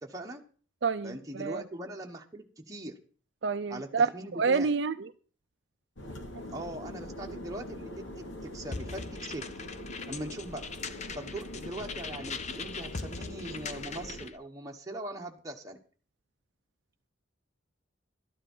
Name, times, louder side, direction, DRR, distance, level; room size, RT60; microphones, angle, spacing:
voice 1, 0.0-0.4 1.0-3.0 3.7-4.7 6.5-8.1 8.4-9.5 10.1-10.6 11.1-15.8, right 1 dB, 15° right, 1 dB, 1.2 m, -41 dB
voice 2, 0.8-1.6 3.4-5.1, right 5 dB, 60° right, 10 dB, 0.5 m, -28 dB
sound 1, 6.0-14.3, left 1 dB, 75° left, 2.3 m, -43 dB
sound 2, 8.7-14.3, left 4 dB, 35° left, 0.7 m, -41 dB
12.5 x 10.0 x 5.5 m, 0.41 s
head